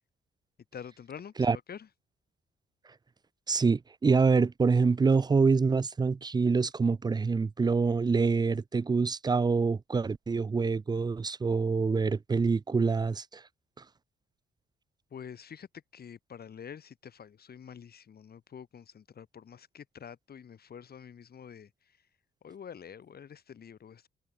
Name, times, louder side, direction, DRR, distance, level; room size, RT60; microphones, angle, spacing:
voice 1, 0.7-1.9 15.1-22.1 22.4-24.1, left 7 dB, 50° left, 4.5 m, -47 dB
voice 2, 3.5-13.4, right 4 dB, 20° right, 0.5 m, -26 dB
cardioid pair, 90°, 20 cm